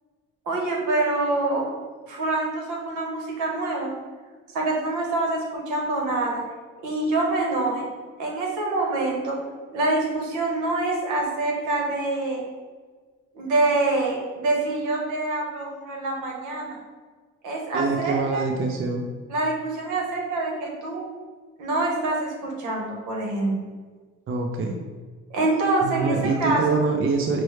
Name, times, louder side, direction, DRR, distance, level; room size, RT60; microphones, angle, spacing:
voice 1, 0.5-1.7 2.0-3.9 4.5-6.4 6.8-7.9 8.2-9.4 9.7-12.4 13.3-16.8 17.4-18.4 19.3-21.0 21.6-23.6 25.3-26.8, right 2 dB, 80° right, -1 dB, 1.1 m, -25 dB
voice 2, 17.7-19.1 24.3-24.8 25.8-27.4, right 4 dB, 45° right, 3 dB, 0.5 m, -25 dB
5.9 x 2.1 x 3.1 m, 1.5 s
cardioid pair, 90°, 30 cm